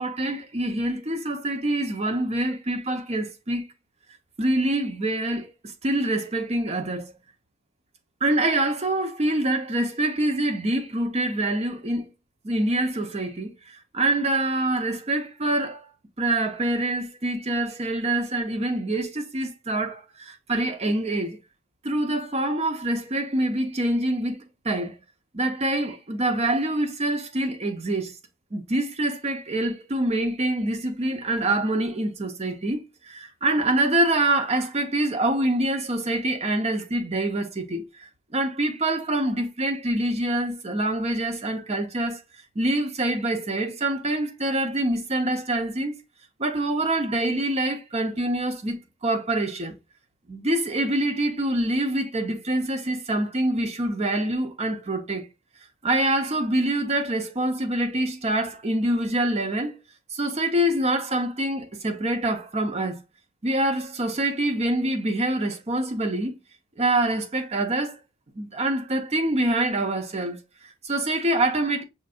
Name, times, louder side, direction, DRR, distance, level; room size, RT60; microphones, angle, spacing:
voice 1, 0.0-3.7 4.4-7.1 8.2-12.1 12.4-15.9 16.2-21.4 21.8-25.0 25.3-28.2 28.5-42.2 42.5-46.0 46.4-49.7 50.3-55.3 55.8-59.8 60.1-63.0 63.4-66.4 66.8-68.0 68.4-71.8, right 1 dB, 30° right, 0.8 m, -25 dB
6.4 x 2.6 x 2.4 m
head